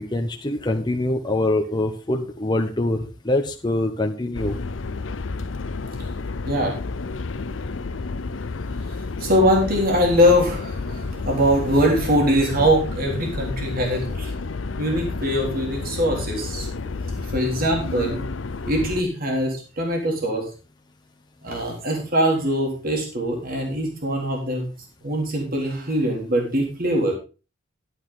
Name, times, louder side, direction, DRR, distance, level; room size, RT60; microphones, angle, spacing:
voice 1, 0.0-4.5, left 2 dB, 20° left, 2 dB, 1.1 m, -24 dB
sound 1, 4.3-19.0, left 3 dB, 75° left, 0.7 m, -30 dB
voice 2, 9.2-14.3 14.8-16.9 17.2-18.2 18.6-20.4 21.4-24.7 25.0-27.2, equal, 50° right, 1 dB, 3.7 m, -22 dB
12.0 x 9.8 x 3.8 m, 0.32 s
head